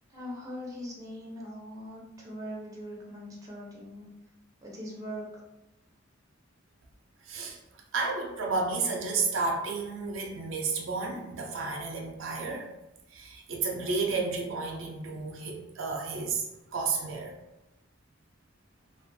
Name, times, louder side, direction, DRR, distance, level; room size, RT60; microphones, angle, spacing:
voice 1, 0.1-4.1 4.6-5.3, equal, 20° right, -5 dB, 0.6 m, -41 dB
voice 2, 7.2-7.6 7.9-12.7 13.1-17.4, right 4 dB, 80° right, 0 dB, 0.5 m, -32 dB
2.4 x 2.2 x 2.6 m, 0.94 s
head